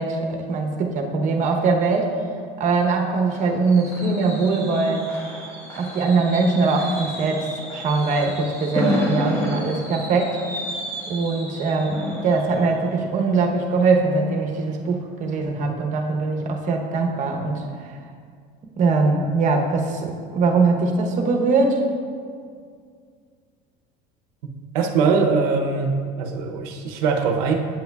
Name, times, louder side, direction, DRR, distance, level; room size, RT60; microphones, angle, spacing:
voice 1, 0.0-2.1 2.6-5.1 5.8-10.4 11.1-18.0 18.8-21.8, right 3 dB, 40° right, 2 dB, 0.9 m, -22 dB
Fireworks, 2.6-14.3 14.7-15.0 15.3-15.4, equal, 15° left, 1.3 m, -31 dB
voice 2, 24.7-25.9 26.2-27.6, right 5 dB, 90° right, 3 dB, 0.7 m, -21 dB
8.3 x 7.9 x 2.3 m, 2.1 s
cardioid pair, 135°, 19 cm